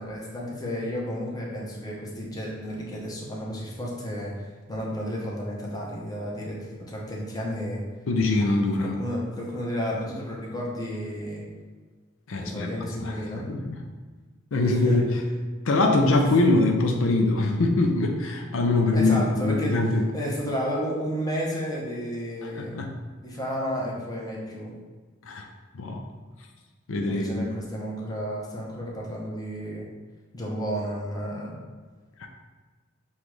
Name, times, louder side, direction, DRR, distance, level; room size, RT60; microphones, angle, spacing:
voice 1, 0.0-4.3 4.7-6.6 6.9-7.8 8.8-11.5 12.4-13.6 14.6-15.0 16.1-16.2 18.9-19.8 20.1-22.8 23.2-24.7 27.0-29.9 30.3-31.6, equal, 20° left, -4 dB, 0.8 m, -32 dB
voice 2, 8.1-9.0 12.3-13.8 14.5-15.2 15.6-20.1 22.4-23.0 25.2-25.5 25.7-26.0 26.9-27.4 32.2-32.3, left 2 dB, 80° left, 2 dB, 0.5 m, -23 dB
7.1 x 2.4 x 3.1 m, 1.4 s
head